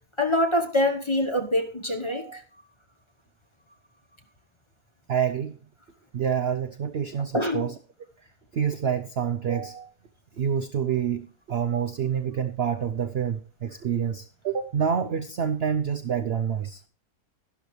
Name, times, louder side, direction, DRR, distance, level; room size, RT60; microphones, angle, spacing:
voice 1, 0.2-2.4 7.3-7.6, left 1 dB, 20° left, 4 dB, 0.9 m, -25 dB
voice 2, 2.1-2.4 5.1-5.5 6.1-7.7 8.5-9.9 10.4-16.8, right 8 dB, 60° right, 9 dB, 0.7 m, -27 dB
12.0 x 11.5 x 3.1 m, 0.42 s
omnidirectional pair, 1.6 m